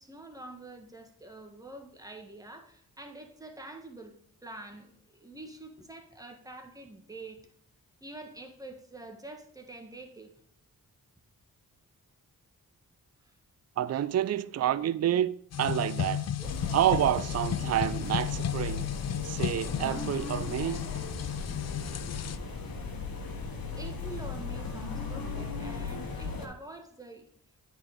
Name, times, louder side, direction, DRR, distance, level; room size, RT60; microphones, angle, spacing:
voice 1, 0.0-4.1 4.4-7.4 8.0-10.3 13.2-13.3 16.4-17.2 23.7-27.2, right 2 dB, 10° right, 1.4 m, -46 dB
voice 2, 13.8-16.3 16.7-18.9 19.2-20.8, right 11 dB, 40° right, 0.4 m, -28 dB
sound 1, 15.5-22.4, left 10 dB, 40° left, 0.4 m, -34 dB
sound 2, 16.4-26.5, left 4 dB, 60° left, 1.2 m, -37 dB
8.8 x 4.3 x 3.6 m
cardioid pair, 40°, 40 cm